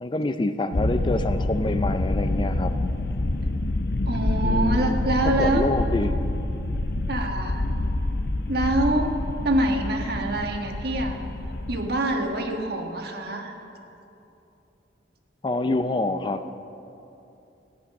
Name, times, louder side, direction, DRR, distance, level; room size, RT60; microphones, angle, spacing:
voice 1, 0.0-2.7 4.4-6.2 15.4-16.5, left 2 dB, 25° left, 10 dB, 0.4 m, -27 dB
sound 1, 0.7-11.9, left 2 dB, 60° left, 0.7 m, -27 dB
voice 2, 4.1-5.6 7.1-7.6 8.5-9.1 9.4-11.3 11.7-13.6, right 1 dB, 60° right, 3 dB, 1.4 m, -25 dB
16.0 x 10.0 x 5.4 m, 2.8 s
head